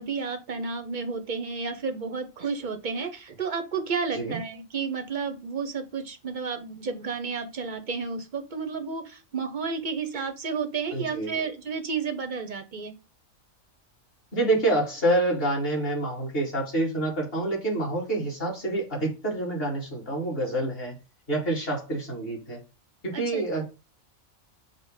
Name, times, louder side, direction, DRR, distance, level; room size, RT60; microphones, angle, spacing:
voice 1, 0.0-12.9 23.1-23.4, right 5 dB, 50° right, 0.6 m, -31 dB
voice 2, 10.9-11.3 14.3-21.0 21.3-22.6 23.0-23.7, right 1 dB, 45° left, 2.3 m, -27 dB
5.0 x 2.1 x 4.8 m
omnidirectional pair, 1.4 m